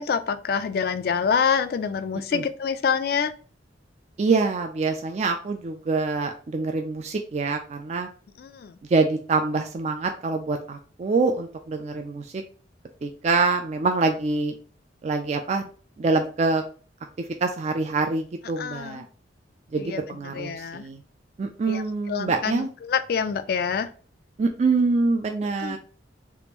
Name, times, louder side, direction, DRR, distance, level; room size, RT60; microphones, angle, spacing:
voice 1, 0.0-3.3 8.4-8.8 18.6-19.1 19.8-20.8 21.7-21.8 22.1-23.9 25.6-25.8, left 6 dB, 55° left, 11 dB, 0.3 m, -26 dB
voice 2, 4.2-8.1 8.9-12.4 13.0-14.5 15.0-15.6 16.0-16.6 17.4-19.0 19.7-21.0 21.4-22.7 24.4-25.8, right 3 dB, 40° right, 4 dB, 0.3 m, -25 dB
3.5 x 2.4 x 2.9 m, 0.40 s
head